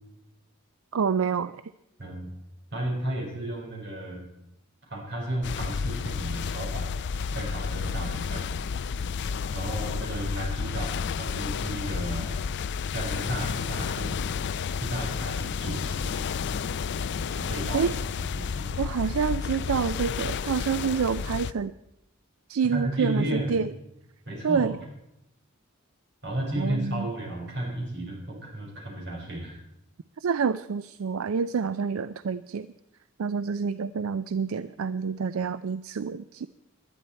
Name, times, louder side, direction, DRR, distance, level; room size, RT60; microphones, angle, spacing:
voice 1, 0.9-1.6 17.7-17.9 18.8-21.7 22.5-23.7 24.4-24.8 26.6-27.1 30.2-32.7 33.2-36.5, right 6 dB, 80° right, 15 dB, 0.4 m, -27 dB
voice 2, 2.0-2.3 2.7-4.3 4.9-6.9 7.3-8.5 9.5-12.4 12.9-14.2 14.7-16.2 17.3-18.7 22.7-23.6 24.3-24.7 26.2-29.6, right 1 dB, 55° right, -1 dB, 5.3 m, -33 dB
sound 1, 5.4-21.5, left 6 dB, 55° left, 0.4 m, -31 dB
19.0 x 12.0 x 4.4 m, 0.83 s
head